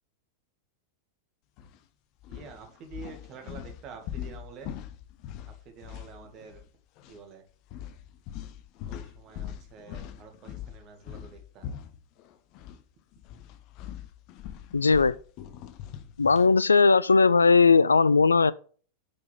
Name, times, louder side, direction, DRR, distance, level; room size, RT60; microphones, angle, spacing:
sound 1, 1.6-1.8 2.2-6.7 7.0-7.2 7.7-12.8 13.1-16.6, left 10 dB, 40° left, 0.8 m, -42 dB
voice 1, 2.3-4.8 5.5-6.7 7.1-7.4 8.9-11.7, right 5 dB, 35° right, 2.1 m, -47 dB
voice 2, 14.7-15.1 16.2-18.5, left 4 dB, 75° left, 0.3 m, -19 dB
8.8 x 5.9 x 3.5 m
figure-of-eight pair, 90°, 0 cm